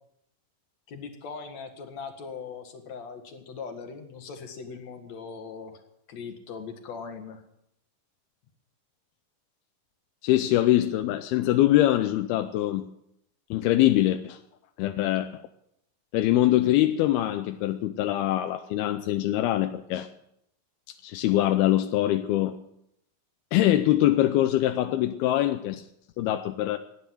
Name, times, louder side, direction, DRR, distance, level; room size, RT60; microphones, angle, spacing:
voice 1, 0.9-5.8 6.1-7.4, left 5 dB, 55° left, 2.5 m, -40 dB
voice 2, 10.2-12.9 13.5-14.4 14.8-15.4 16.1-20.1 21.0-22.6 23.5-25.9 26.2-26.8, left 14 dB, 85° left, 2.7 m, -23 dB
17.5 x 10.5 x 7.7 m
omnidirectional pair, 4.4 m